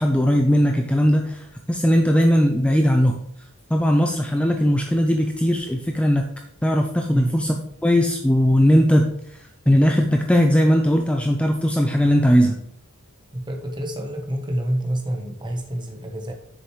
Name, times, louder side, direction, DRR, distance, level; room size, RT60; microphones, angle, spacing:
voice 1, 0.0-3.2 3.7-6.3 6.6-7.6 7.8-12.6, equal, 5° left, 2 dB, 0.4 m, -19 dB
voice 2, 13.3-16.3, right 1 dB, 20° right, 2 dB, 1.1 m, -27 dB
7.8 x 6.5 x 3.2 m, 0.75 s
head